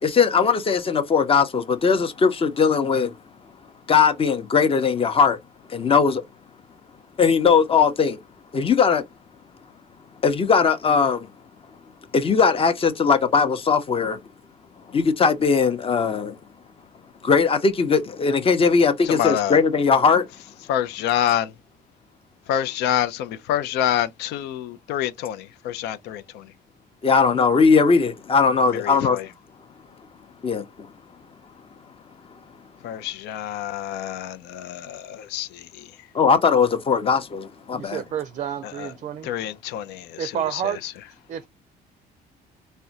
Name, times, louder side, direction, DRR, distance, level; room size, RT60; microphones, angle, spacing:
voice 1, 0.0-3.1 3.9-5.4 5.7-6.2 7.2-8.2 8.5-9.0 10.2-11.3 12.1-14.2 14.9-16.4 17.2-20.3 27.0-29.2 30.4-30.6 36.1-38.0, left 5 dB, 35° left, 0.7 m, -19 dB
voice 2, 19.0-19.6 20.7-21.5 22.5-26.5 28.7-29.3 32.8-35.9 38.6-38.9 39.2-40.9, left 11 dB, 85° left, 0.5 m, -27 dB
voice 3, 37.7-39.3 40.2-40.8 41.3-41.5, right 9 dB, 45° right, 0.4 m, -29 dB
3.6 x 2.2 x 2.7 m
cardioid pair, 110°, 17 cm